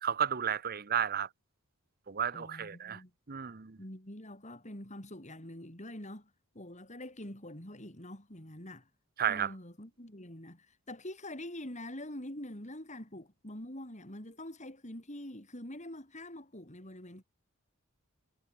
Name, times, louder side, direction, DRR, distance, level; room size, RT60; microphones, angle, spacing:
voice 1, 0.0-1.3 2.1-3.0 3.3-3.8 9.2-9.5, right 8 dB, 45° right, 0.9 m, -32 dB
voice 2, 2.3-3.1 3.8-8.9 9.3-17.2, left 1 dB, 35° left, 6.4 m, -45 dB
head